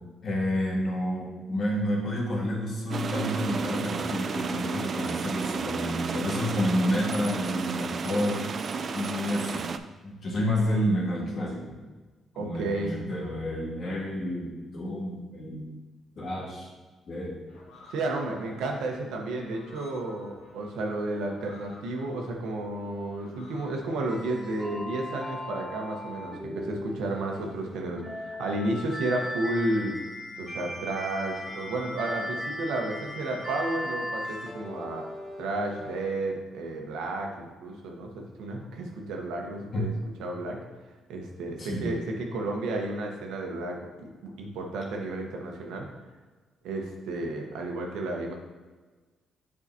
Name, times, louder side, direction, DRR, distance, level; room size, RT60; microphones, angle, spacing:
voice 1, 0.2-8.5 8.9-9.7 10.0-11.8 12.4-15.8 16.2-16.7 17.1-17.4 39.7-39.9 41.6-41.9, left 1 dB, 50° left, -2 dB, 1.6 m, -30 dB
sound 1, 2.9-9.8, right 4 dB, 45° right, 0.3 m, -32 dB
voice 2, 12.4-12.9 17.9-30.0 30.4-35.1 35.4-39.9 40.2-40.6 41.1-45.9 46.6-48.3, right 2 dB, 85° right, 1 dB, 1.0 m, -32 dB
sound 2, 17.5-24.6, left 2 dB, 75° left, 1.5 m, -53 dB
sound 3, 24.1-36.1, left 1 dB, ahead, 1.3 m, -38 dB
7.5 x 4.8 x 2.8 m, 1.3 s
cardioid pair, 90°, 0 cm